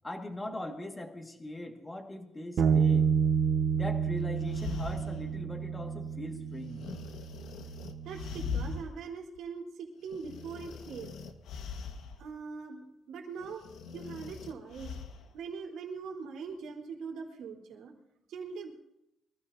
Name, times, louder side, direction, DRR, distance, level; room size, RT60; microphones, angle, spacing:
voice 1, 0.0-3.1 3.7-6.9, left 1 dB, 15° left, 3 dB, 1.9 m, -40 dB
Bass guitar, 2.6-8.8, right 6 dB, 60° right, 0.8 m, -30 dB
sound 1, 4.2-5.4 6.8-8.9 9.4-9.5 10.1-12.2 13.4-15.3, left 5 dB, 85° left, 1.5 m, -41 dB
voice 2, 8.0-11.1 12.2-13.6 13.9-15.0 15.3-17.9 18.3-18.7, right 5 dB, 85° right, -2 dB, 3.7 m, -42 dB
25.0 x 15.0 x 2.8 m, 0.88 s
cardioid pair, 130°, 0 cm